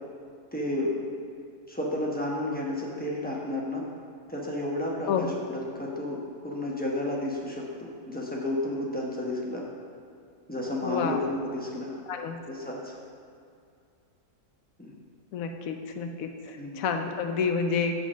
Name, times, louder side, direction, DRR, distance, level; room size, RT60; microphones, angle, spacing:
voice 1, 0.5-1.0 1.7-3.8 4.3-9.7 10.5-12.0 12.5-12.9 14.8-14.9 16.6-16.8, left 1 dB, 10° left, -4 dB, 0.7 m, -32 dB
voice 2, 10.8-11.2 12.1-12.4 15.3-17.9, left 6 dB, 70° left, 5 dB, 1.0 m, -29 dB
8.3 x 3.8 x 6.1 m, 2.4 s
omnidirectional pair, 1.6 m